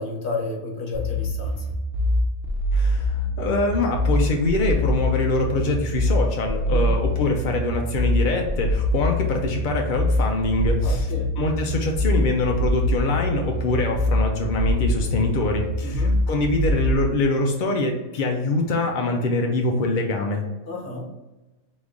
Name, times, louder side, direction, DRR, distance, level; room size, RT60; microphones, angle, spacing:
voice 1, 0.0-1.6 6.7-6.9 10.8-11.3 15.8-16.3 20.7-21.1, left 2 dB, 45° left, -1 dB, 1.0 m, -31 dB
sound 1, 0.9-16.9, left 1 dB, 50° right, 0.9 m, -23 dB
voice 2, 2.7-20.4, left 2 dB, 65° left, 2 dB, 0.5 m, -24 dB
3.5 x 3.1 x 3.8 m, 1.1 s
omnidirectional pair, 1.4 m